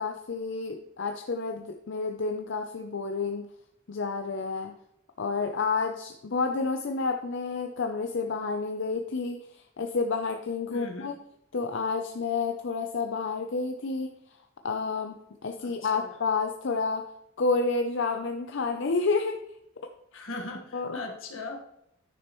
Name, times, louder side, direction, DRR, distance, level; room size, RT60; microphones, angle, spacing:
voice 1, 0.0-3.5 3.9-4.7 5.2-11.2 11.5-14.2 14.6-17.1 17.4-19.4 19.8-20.2 20.7-21.0, left 4 dB, 65° left, 5 dB, 0.5 m, -30 dB
voice 2, 10.7-11.1 15.6-16.1 20.1-21.6, left 2 dB, 85° left, 2 dB, 1.5 m, -39 dB
9.9 x 6.4 x 3.0 m, 0.77 s
head